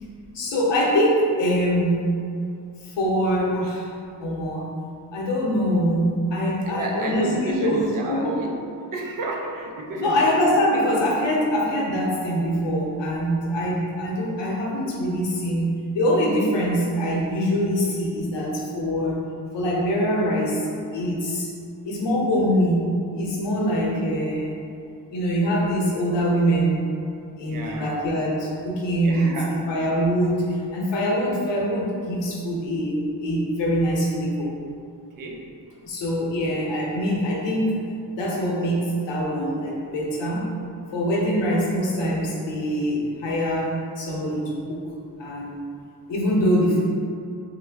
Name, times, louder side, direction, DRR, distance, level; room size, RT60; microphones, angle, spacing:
voice 1, 0.3-2.1 2.8-3.9 4.2-4.7 5.1-8.5 10.0-19.3 19.5-20.7 20.9-21.5 21.8-24.6 25.1-26.8 27.4-29.3 29.7-34.5 35.8-37.8 38.1-40.5 40.9-44.9 45.2-45.6 46.1-46.8, equal, 85° left, -4 dB, 0.8 m, -23 dB
voice 2, 6.7-8.6 8.9-10.3 11.2-11.3 27.5-28.0 29.0-29.6 35.2-35.8, right 2 dB, 50° right, 0 dB, 0.5 m, -31 dB
3.1 x 2.2 x 3.3 m, 2.4 s
wide cardioid pair, 135°, 42 cm